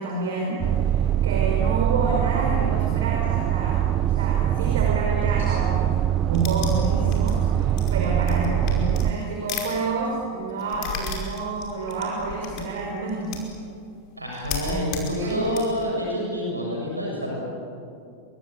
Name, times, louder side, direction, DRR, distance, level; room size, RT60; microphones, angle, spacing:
voice 1, 0.0-5.9 6.2-13.4 14.7-15.4, right 3 dB, 60° right, 0 dB, 5.1 m, -29 dB
sound 1, 0.6-9.1, right 11 dB, 30° right, 0.8 m, -23 dB
sound 2, 6.3-9.7 10.0-13.6 14.0-14.1 14.3-15.9, left 6 dB, 40° left, 5.2 m, -34 dB
voice 2, 14.2-17.4, equal, 85° right, -2 dB, 6.9 m, -28 dB
27.5 x 24.0 x 8.5 m, 2.5 s
figure-of-eight pair, 90°, 0 cm